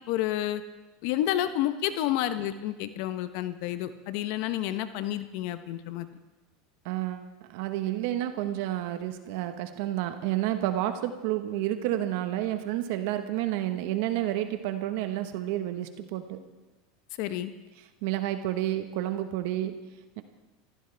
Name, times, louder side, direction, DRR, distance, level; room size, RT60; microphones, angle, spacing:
voice 1, 0.1-0.6 1.0-6.1 17.2-17.5, left 12 dB, 65° left, 11 dB, 0.9 m, -30 dB
voice 2, 6.8-16.4 18.0-20.2, right 13 dB, 70° right, 9 dB, 1.2 m, -30 dB
24.0 x 15.0 x 3.4 m, 1.1 s
supercardioid pair, 110°, 0 cm